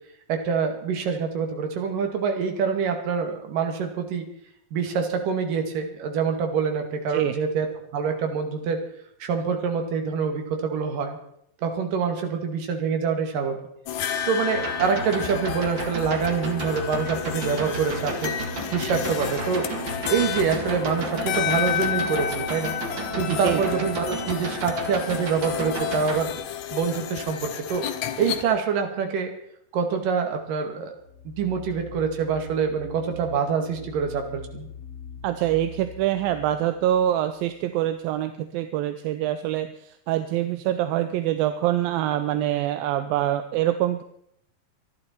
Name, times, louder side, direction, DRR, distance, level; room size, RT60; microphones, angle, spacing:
voice 1, 0.3-4.3 4.7-7.7 7.9-8.8 9.2-11.2 11.6-13.6 14.3-18.3 18.7-19.7 20.1-22.8 23.2-26.3 26.7-27.9 28.2-29.3 29.7-30.9 31.3-34.7, right 6 dB, 70° right, 5 dB, 3.6 m, -26 dB
sound 1, 13.9-28.4, left 10 dB, 65° left, 2.0 m, -31 dB
sound 2, 14.5-26.2, right 2 dB, 35° right, 2.4 m, -33 dB
voice 2, 23.3-23.6 35.2-44.0, right 12 dB, 85° right, 9 dB, 2.6 m, -25 dB
sound 3, 31.0-37.6, left 1 dB, 45° left, 7.5 m, -42 dB
26.0 x 11.0 x 4.4 m, 0.71 s
omnidirectional pair, 4.2 m